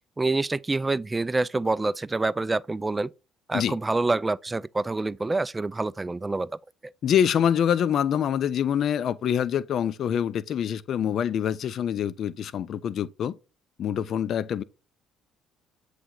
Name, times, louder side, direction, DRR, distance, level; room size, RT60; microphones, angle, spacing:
voice 1, 0.2-3.1 3.5-6.5 6.8-6.9, right 3 dB, 20° right, 0.3 m, -27 dB
voice 2, 7.0-13.3 13.8-14.6, left 9 dB, 55° left, 0.5 m, -25 dB
7.9 x 3.2 x 3.8 m
hypercardioid pair, 60°, 0 cm